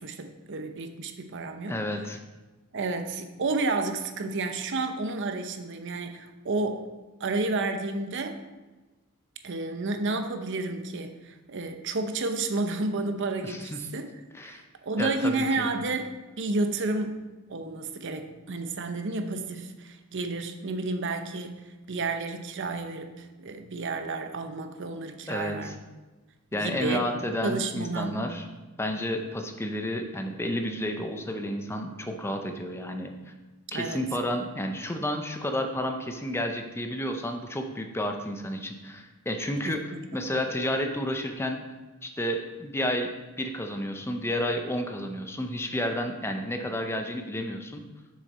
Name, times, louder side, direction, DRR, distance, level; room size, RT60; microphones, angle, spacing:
voice 1, 0.0-1.8 2.7-6.9 7.2-8.4 9.4-14.1 14.4-17.2 17.5-25.7 26.5-27.0 27.4-28.3 33.7-34.0 39.6-40.0, right 3 dB, 60° right, 7 dB, 0.7 m, -31 dB
voice 2, 1.7-2.2 13.4-13.9 14.3-14.6 15.0-15.7 25.3-25.7 26.5-28.4 28.8-33.1 33.7-39.8 40.1-41.6 42.0-47.8, left 1 dB, 10° left, 5 dB, 0.6 m, -31 dB
7.0 x 6.5 x 4.2 m, 1.2 s
head